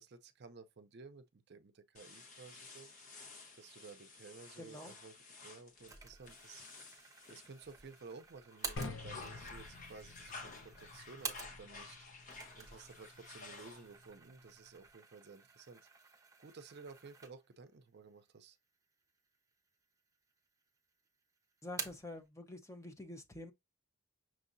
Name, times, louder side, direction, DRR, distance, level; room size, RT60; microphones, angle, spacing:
voice 1, 0.0-3.1 3.6-15.8 16.4-18.6, right 4 dB, 55° right, 0.5 m, -55 dB
sound 1, 2.0-8.1 8.5-14.1, left 3 dB, 40° left, 1.0 m, -53 dB
voice 2, 4.6-4.9 21.6-23.5, left 2 dB, 15° left, 0.7 m, -47 dB
sound 2, 5.9-11.9 12.2-17.7 18.1-18.2 19.0-19.7 20.0-20.8 21.1-22.2, right 5 dB, 15° right, 0.9 m, -50 dB
sound 3, 8.8-14.9, left 2 dB, 65° left, 0.9 m, -50 dB
6.1 x 2.8 x 2.5 m
head